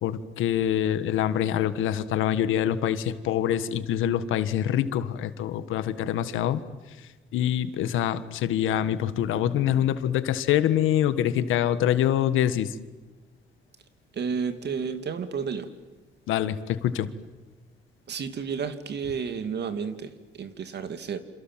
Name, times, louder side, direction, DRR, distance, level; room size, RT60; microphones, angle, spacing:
voice 1, 0.0-6.6 7.3-12.7 16.3-17.1, left 10 dB, 85° left, 13 dB, 1.6 m, -25 dB
voice 2, 14.1-15.7 18.1-21.2, right 6 dB, 60° right, 9 dB, 2.7 m, -31 dB
28.5 x 27.5 x 7.6 m, 1.2 s
cardioid pair, 90°, 20 cm